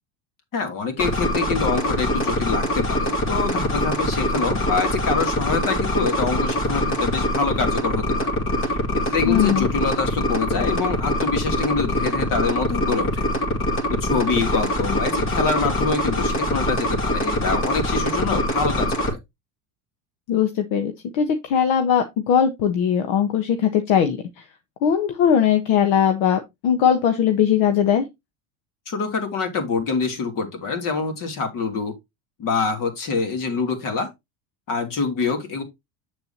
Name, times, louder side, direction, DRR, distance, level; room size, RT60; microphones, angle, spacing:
voice 1, 0.5-8.3 8.9-13.3 13.9-19.2 28.9-31.9 32.4-34.1 34.7-35.6, left 4 dB, 45° left, 2.9 m, -25 dB
sound 1, 1.0-19.1, left 1 dB, 30° left, 2.4 m, -23 dB
voice 2, 9.2-9.7 20.3-24.2 24.8-28.0, left 8 dB, 65° left, 1.3 m, -20 dB
7.9 x 6.9 x 2.9 m
supercardioid pair, 130°, 43 cm